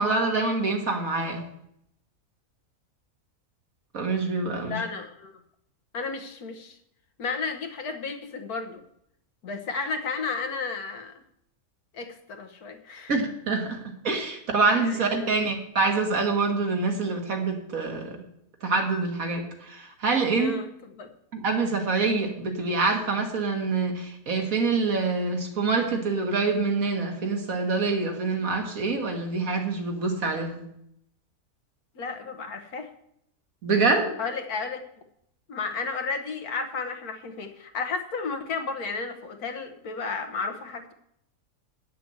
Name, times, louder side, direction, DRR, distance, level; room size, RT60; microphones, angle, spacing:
voice 1, 0.0-1.4 3.9-4.8 13.1-18.2 18.6-20.5 21.3-30.6 33.6-34.2, right 3 dB, 65° right, 3 dB, 2.1 m, -26 dB
voice 2, 4.6-5.3 5.9-6.8 7.2-8.8 9.4-11.2 11.9-13.1 14.8-15.3 20.3-21.1 32.0-32.9 34.2-34.8 35.5-40.9, left 4 dB, 75° left, 7 dB, 1.7 m, -33 dB
9.3 x 7.0 x 7.9 m, 0.75 s
omnidirectional pair, 1.6 m